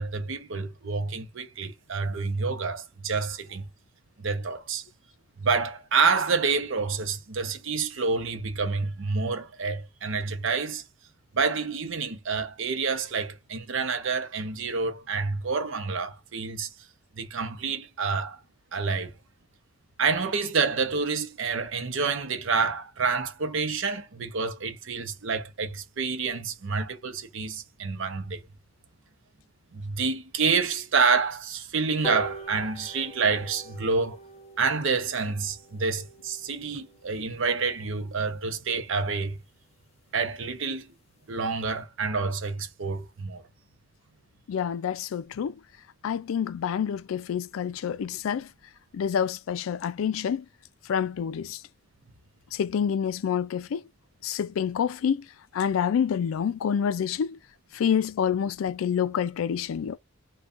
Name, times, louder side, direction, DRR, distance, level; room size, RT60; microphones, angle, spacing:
voice 1, 0.0-3.7 4.2-4.8 5.4-10.8 11.3-16.7 17.2-18.4 18.7-19.1 20.0-28.4 29.7-34.2 34.6-39.4 40.1-40.9 41.3-43.4, right 4 dB, 65° right, 0.7 m, -28 dB
sound 1, 32.0-38.8 39.2-39.3 39.6-39.7 40.0-40.1 40.4-40.5 40.8-41.1 41.5-41.6, equal, 30° left, 0.5 m, -43 dB
voice 2, 44.5-45.6 46.0-48.5 48.9-50.5 50.9-51.6 52.5-53.8 54.2-55.3 55.5-57.4 57.7-60.0, left 8 dB, 80° left, 0.3 m, -27 dB
2.5 x 2.3 x 3.6 m
head